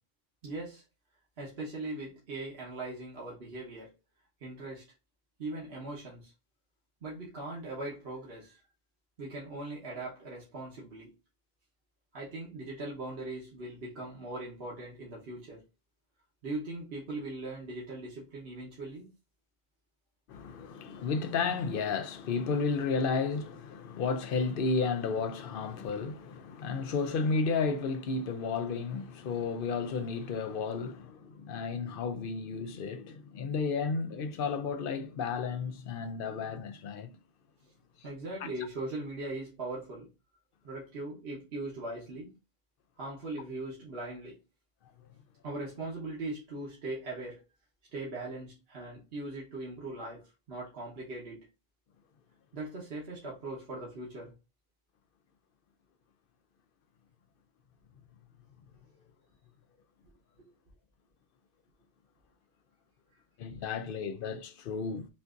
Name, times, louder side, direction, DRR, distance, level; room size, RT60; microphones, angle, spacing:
voice 1, 0.4-0.8 1.4-3.9 4.4-4.9 5.4-6.3 7.0-8.6 9.2-11.1 12.1-15.6 16.4-19.1 37.6-37.7 38.0-40.1 40.6-42.3 43.0-44.4 45.4-47.4 47.9-51.5 52.5-54.3 60.4-60.5, right 2 dB, 70° right, 1.3 m, -40 dB
voice 2, 20.3-37.1 63.4-65.1, left 4 dB, 65° left, 0.7 m, -32 dB
5.7 x 2.6 x 2.4 m
omnidirectional pair, 1.1 m